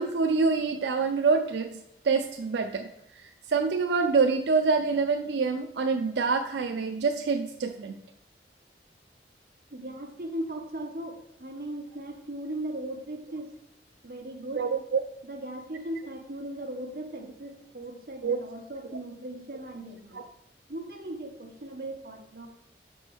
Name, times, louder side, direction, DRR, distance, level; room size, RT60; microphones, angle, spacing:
voice 1, 0.0-8.0 14.5-15.0 18.2-18.4 18.8-19.0 20.1-20.2, right 4 dB, 85° right, 5 dB, 0.4 m, -26 dB
voice 2, 9.7-13.5 14.0-14.7 15.2-20.2 20.7-22.5, right 1 dB, 55° right, 2 dB, 1.2 m, -38 dB
6.0 x 4.5 x 6.3 m, 0.84 s
head